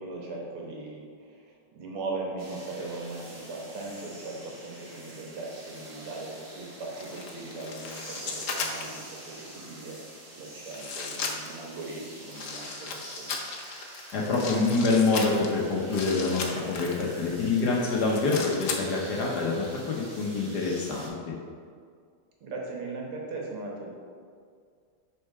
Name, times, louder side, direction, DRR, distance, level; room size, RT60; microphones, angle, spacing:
voice 1, 0.0-10.0 10.4-13.4 22.4-23.9, right 2 dB, 85° right, -1 dB, 2.1 m, -39 dB
sound 1, 2.4-21.1, right 1 dB, 35° right, 1.2 m, -46 dB
sound 2, 7.0-9.1 9.9-10.0 10.7-11.7 12.3-17.1 17.6-19.4 19.6-19.8, left 4 dB, 90° left, 0.6 m, -36 dB
voice 2, 14.1-21.1, left 3 dB, 60° left, -3 dB, 1.3 m, -26 dB
6.7 x 4.4 x 4.7 m, 2.1 s
omnidirectional pair, 2.3 m